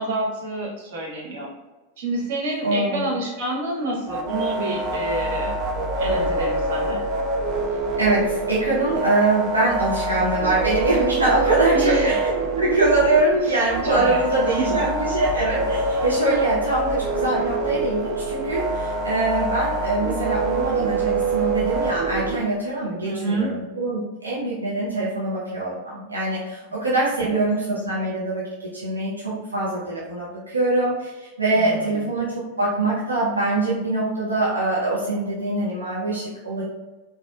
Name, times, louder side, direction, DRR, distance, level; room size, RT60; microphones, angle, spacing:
voice 1, 0.0-1.5 2.0-5.5 5.9-7.0 11.7-12.1 13.4-13.5 13.8-14.2 14.6-14.8 23.0-23.6 27.2-27.4 31.6-32.0, right 2 dB, 55° right, -3 dB, 1.0 m, -28 dB
voice 2, 2.6-3.1 8.0-28.4 28.7-36.6, right 2 dB, 75° right, -7 dB, 0.8 m, -23 dB
sound 1, 4.1-22.4, right 2 dB, 35° right, 0.4 m, -25 dB
4.1 x 2.6 x 2.3 m, 1.2 s
figure-of-eight pair, 90°, 0 cm